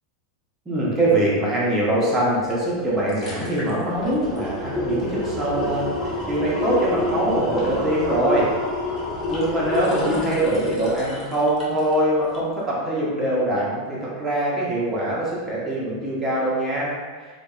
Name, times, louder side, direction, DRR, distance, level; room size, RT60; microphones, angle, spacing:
voice 1, 0.7-8.5 9.3-16.9, right 1 dB, 15° right, -7 dB, 0.7 m, -23 dB
sound 1, 2.5-2.6 2.9-12.0 12.3-12.4, left 2 dB, 25° left, 0.5 m, -28 dB
2.5 x 2.1 x 2.3 m, 1.5 s
supercardioid pair, 145°, 0 cm